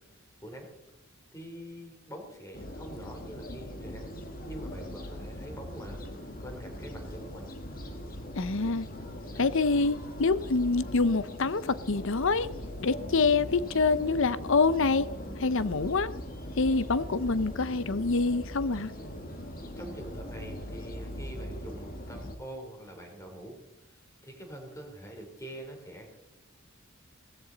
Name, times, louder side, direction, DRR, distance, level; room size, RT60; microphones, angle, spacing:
voice 1, 1.3-4.1 4.5-6.1 6.4-7.5 19.8-23.6 23.9-26.2, right 1 dB, 15° left, 3.6 m, -45 dB
sound 1, 2.5-22.4, equal, 40° left, 1.9 m, -40 dB
voice 2, 8.4-8.9 9.4-12.5 12.8-15.1 15.4-16.1 16.6-18.9, left 4 dB, 65° left, 0.7 m, -26 dB
18.5 x 15.5 x 4.0 m
head